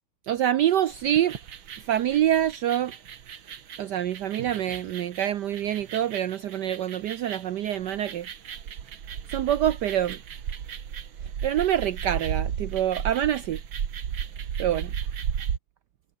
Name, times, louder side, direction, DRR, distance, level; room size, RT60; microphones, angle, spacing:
voice 1, 0.3-1.3 1.9-2.9 3.8-8.3 9.3-10.2 11.4-13.6 14.6-14.9, right 11 dB, 65° right, 1.3 m, -26 dB
sound 1, 0.9-15.6, right 8 dB, 90° right, 2.4 m, -35 dB
omnidirectional pair, 2.1 m